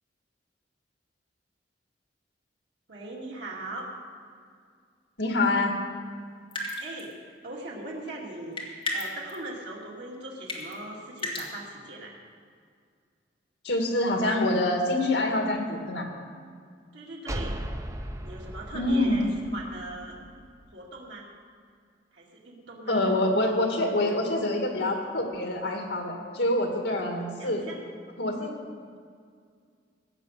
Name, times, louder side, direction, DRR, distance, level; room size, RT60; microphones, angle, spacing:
voice 1, 2.9-3.9 6.8-7.1 7.4-8.6 8.9-12.2 16.9-17.6 18.2-19.3 19.5-20.2 20.7-21.3 22.1-23.1 27.4-27.8, right 2 dB, 80° right, -3 dB, 2.5 m, -40 dB
voice 2, 5.2-5.8 13.6-16.1 18.7-19.2 22.9-27.6 28.2-28.5, left 1 dB, 70° left, 2 dB, 2.2 m, -26 dB
sound 1, 6.5-7.1 8.6-9.4 10.5-10.7 11.2-11.5, left 2 dB, 30° left, 2.3 m, -32 dB
sound 2, 17.3-20.8, right 1 dB, 20° right, 0.7 m, -37 dB
16.0 x 8.0 x 6.7 m, 2.2 s
head